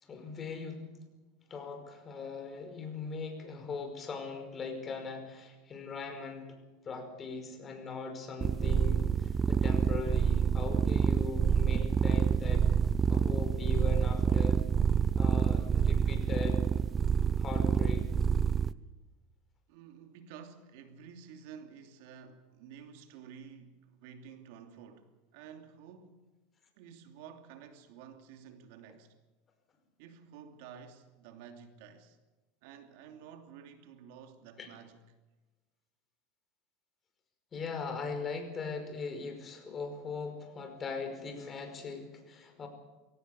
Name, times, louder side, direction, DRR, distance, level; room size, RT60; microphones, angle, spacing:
voice 1, 0.0-0.9 1.5-6.6 6.8-12.6 13.1-14.6 15.2-16.6 17.4-18.1 34.6-34.7 37.5-42.7, left 4 dB, 25° left, 5.2 m, -40 dB
sound 1, 8.4-18.7, right 6 dB, 25° right, 0.7 m, -27 dB
voice 2, 19.7-26.3 26.7-29.1 30.0-32.2 32.6-35.0, right 7 dB, 70° right, 2.9 m, -51 dB
23.0 x 18.0 x 7.1 m
supercardioid pair, 125°, 0 cm